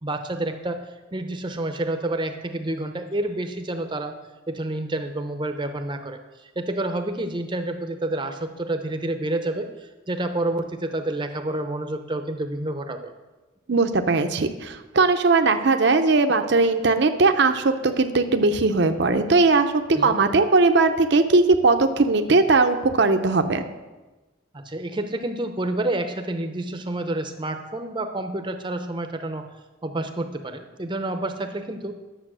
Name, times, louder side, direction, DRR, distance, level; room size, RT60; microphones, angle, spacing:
voice 1, 0.0-4.2 4.5-13.1 19.9-20.2 24.5-29.5 29.8-31.9, right 1 dB, 25° right, 7 dB, 0.7 m, -29 dB
voice 2, 13.7-23.6, right 3 dB, 60° right, 7 dB, 0.7 m, -19 dB
11.0 x 7.0 x 6.2 m, 1.2 s
head